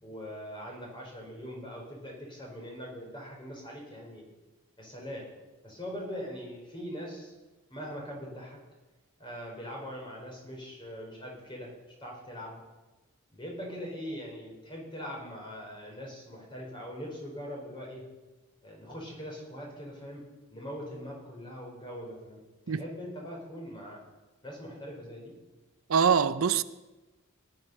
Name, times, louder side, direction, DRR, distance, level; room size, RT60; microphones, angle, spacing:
voice 1, 0.0-4.2 4.8-5.3 5.6-7.3 7.7-8.6 9.2-11.7 12.0-12.6 13.3-18.0 18.6-20.2 20.5-22.4 22.7-24.0 24.4-25.3, equal, 25° left, 4.6 m, -41 dB
voice 2, 25.9-26.6, right 6 dB, 80° right, 0.6 m, -23 dB
18.0 x 11.0 x 5.5 m
head